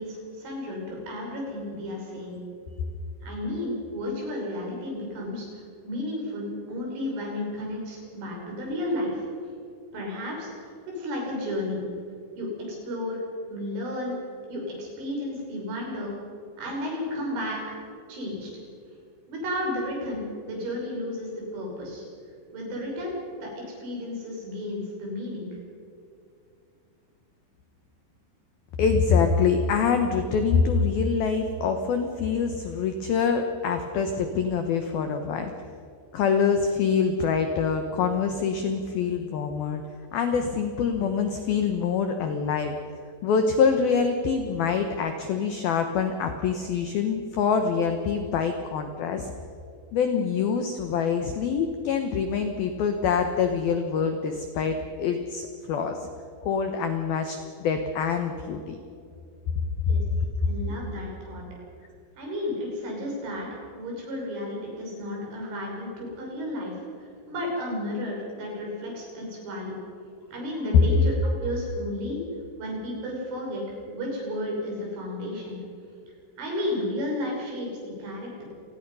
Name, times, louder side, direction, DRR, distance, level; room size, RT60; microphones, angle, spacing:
voice 1, 0.0-2.4 3.2-9.3 9.9-11.8 12.4-13.2 13.5-14.2 14.5-16.2 16.6-17.8 18.1-18.5 19.3-22.0 22.5-23.1 23.4-25.6 59.9-60.0 60.4-61.4 62.2-63.5 63.7-69.8 70.3-71.1 71.4-72.2 72.6-75.6 76.4-77.7 78.0-78.4, left 1 dB, 65° right, -2 dB, 8.3 m, -33 dB
voice 2, 28.8-35.5 36.1-39.8 40.1-42.8 43.2-49.3 49.9-56.1 56.4-58.8 59.9-60.0, left 6 dB, 75° left, 6 dB, 2.2 m, -25 dB
28.0 x 19.5 x 5.6 m, 2.4 s
omnidirectional pair, 6.0 m